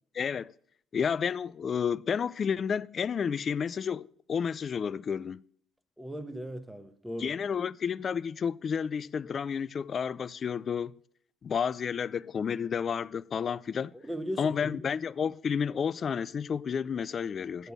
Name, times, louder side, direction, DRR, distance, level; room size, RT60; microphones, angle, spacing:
voice 1, 0.1-0.5 0.9-5.4 7.2-10.9 11.4-13.9 14.4-17.7, left 7 dB, 45° left, 0.3 m, -31 dB
voice 2, 6.0-7.4 13.9-14.8 17.6-17.7, equal, 5° right, 1.1 m, -38 dB
8.1 x 6.8 x 5.9 m
hypercardioid pair, 65°, 0 cm